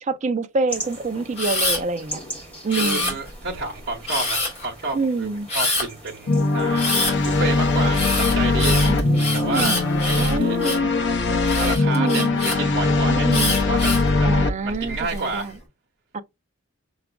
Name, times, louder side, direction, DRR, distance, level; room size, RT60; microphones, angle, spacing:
voice 1, 0.0-2.2 2.6-3.2 4.9-5.5 8.7-9.8 10.2-10.9 11.9-12.4 13.1-13.5 14.2-15.5 16.1-16.2, right 3 dB, 35° right, 0.4 m, -26 dB
sound 1, 0.7-10.7, right 1 dB, 5° left, 1.8 m, -41 dB
Camera, 1.4-1.8 2.7-3.5 4.1-4.7 5.5-5.9 6.7-7.1 7.9-10.9 11.4-12.6 13.3-14.1 14.7-15.2, left 2 dB, 30° left, 1.7 m, -25 dB
voice 2, 2.7-5.3 5.5-6.9 7.2-8.8 9.3-9.8 10.1-10.6 11.6-13.3 13.6-15.5, right 3 dB, 55° right, 0.9 m, -30 dB
sound 2, 6.3-14.5, left 3 dB, 55° left, 0.5 m, -20 dB
5.8 x 2.4 x 2.2 m
head